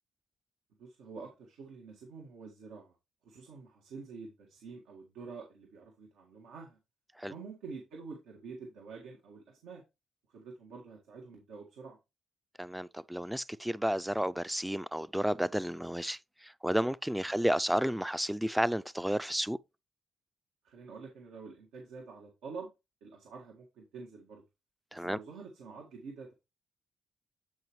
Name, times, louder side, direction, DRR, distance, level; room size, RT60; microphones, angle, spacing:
voice 1, 0.8-2.9 3.2-6.8 7.2-9.8 10.3-12.0 17.3-17.4 20.6-22.7 23.0-24.4 24.9-26.3, right 4 dB, 90° right, 1.8 m, -47 dB
voice 2, 12.6-16.2 16.4-19.6 24.9-25.2, equal, 5° right, 0.3 m, -31 dB
10.5 x 4.9 x 3.1 m
cardioid pair, 90°, 0 cm